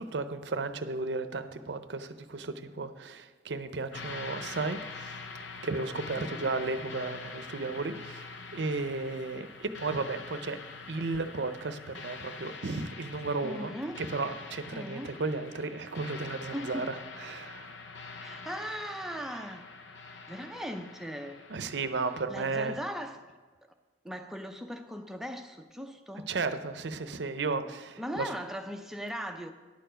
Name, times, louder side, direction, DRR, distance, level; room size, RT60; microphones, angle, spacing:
voice 1, 0.0-10.6 10.9-17.7 21.5-22.8 26.3-28.3, right 3 dB, 70° right, 10 dB, 0.6 m, -34 dB
sound 1, 3.9-22.2, left 4 dB, 80° left, 0.7 m, -45 dB
voice 2, 6.1-6.6 11.0-11.1 13.4-14.0 14.7-15.1 16.5-16.9 18.2-19.7 20.3-21.4 22.3-23.2 24.0-26.3 28.0-29.5, equal, ahead, 5 dB, 0.5 m, -39 dB
11.0 x 6.9 x 5.0 m, 1.4 s
head